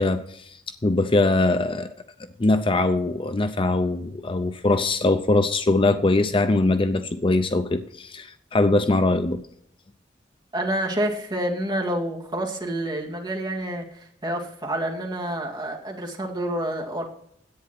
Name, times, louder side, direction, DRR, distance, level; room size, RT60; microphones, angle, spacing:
voice 1, 0.0-1.9 2.4-9.4, left 2 dB, 30° left, 10 dB, 0.6 m, -22 dB
voice 2, 10.5-17.1, right 1 dB, 25° right, 0 dB, 2.3 m, -28 dB
10.5 x 8.9 x 6.1 m, 0.70 s
head